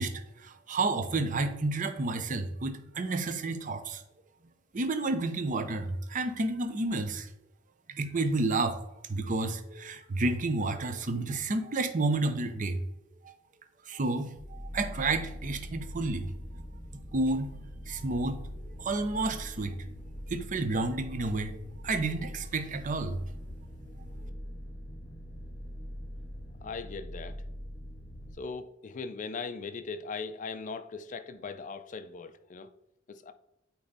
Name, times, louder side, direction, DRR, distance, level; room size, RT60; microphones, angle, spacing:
voice 1, 0.0-4.0 4.7-7.3 7.9-8.8 9.1-12.8 13.2-13.3 13.9-16.3 17.1-17.5 17.9-18.4 18.8-19.8 20.3-21.6 21.8-23.2, right 2 dB, 45° right, 0.6 m, -30 dB
sound 1, 14.3-28.3, equal, 20° left, 1.5 m, -43 dB
voice 2, 26.6-27.4 28.3-32.7 33.1-33.3, left 4 dB, 40° left, 0.4 m, -39 dB
8.6 x 3.0 x 4.0 m
head